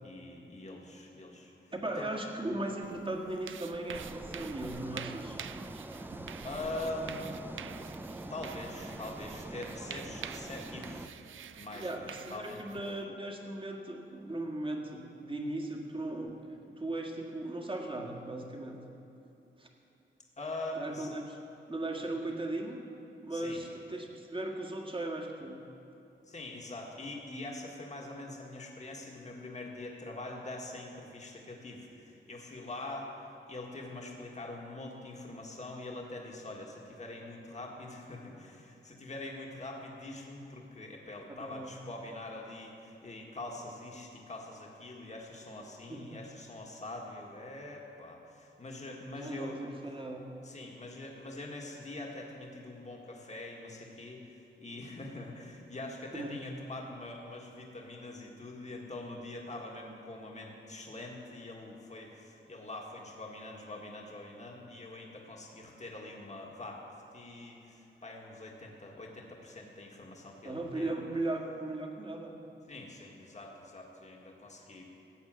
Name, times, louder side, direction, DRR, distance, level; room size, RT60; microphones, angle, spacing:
voice 1, 0.0-1.5 2.0-2.1 6.4-7.3 8.3-11.1 11.6-12.6 20.4-21.1 23.3-23.6 26.3-33.1 33.5-49.6 50.4-71.0 72.7-74.9, left 2 dB, 35° left, -1 dB, 1.7 m, -44 dB
voice 2, 1.7-5.4 11.7-16.3 16.7-18.8 19.6-19.7 20.8-21.4 21.7-22.8 23.2-25.6 41.3-41.7 45.9-46.2 49.2-50.2 56.1-56.4 70.4-72.3, right 2 dB, 25° right, 0 dB, 1.8 m, -37 dB
sound 1, 2.8-13.0, right 9 dB, 80° right, 0.5 m, -47 dB
sound 2, 3.9-11.1, right 1 dB, 10° right, 0.6 m, -44 dB
15.0 x 8.8 x 7.6 m, 2.9 s
wide cardioid pair, 100°, 20 cm